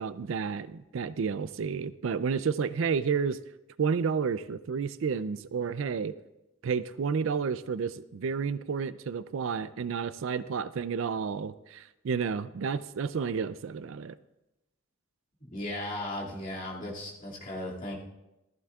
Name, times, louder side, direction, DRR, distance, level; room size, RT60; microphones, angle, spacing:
voice 1, 0.0-3.4 3.8-6.1 6.6-14.1, right 6 dB, 65° right, 15 dB, 0.4 m, -31 dB
voice 2, 15.4-18.0, left 1 dB, 40° left, -4 dB, 2.4 m, -36 dB
14.5 x 14.5 x 2.4 m, 0.95 s
head